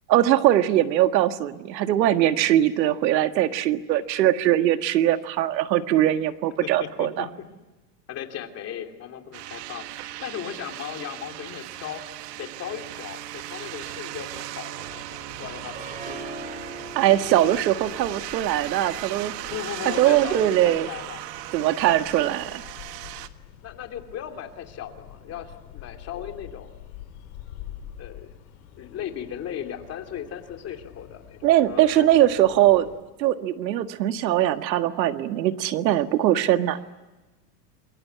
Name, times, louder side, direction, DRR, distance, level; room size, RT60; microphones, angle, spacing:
voice 1, 0.1-7.3 17.0-19.4 19.9-20.9 21.5-22.6 31.4-32.9 33.2-36.8, right 13 dB, 85° right, 9 dB, 1.8 m, -21 dB
voice 2, 6.6-7.5 8.1-9.8 10.2-12.0 12.4-16.2 19.5-21.2 23.6-26.7 28.0-28.3 28.8-32.1, left 9 dB, 30° left, 5 dB, 3.0 m, -37 dB
sound 1, 9.3-23.3, right 15 dB, 70° right, 1.6 m, -37 dB
sound 2, 14.9-33.0, left 11 dB, 60° left, 5.0 m, -47 dB
Harp, 15.7-20.7, right 2 dB, 15° right, 4.2 m, -42 dB
28.0 x 22.0 x 9.5 m, 1.1 s
supercardioid pair, 140°, 50 cm